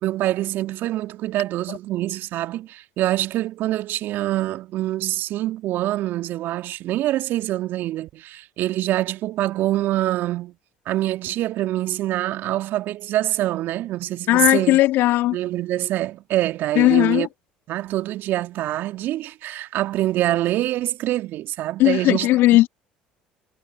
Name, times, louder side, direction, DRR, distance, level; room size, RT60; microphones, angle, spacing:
voice 1, 0.0-10.5 10.9-14.8 15.3-17.3 17.7-22.3, right 15 dB, 60° right, 2.3 m, -25 dB
voice 2, 14.3-15.4 16.8-17.3 21.8-22.7, left 16 dB, 60° left, 2.0 m, -17 dB
hypercardioid pair, 60°, 4 cm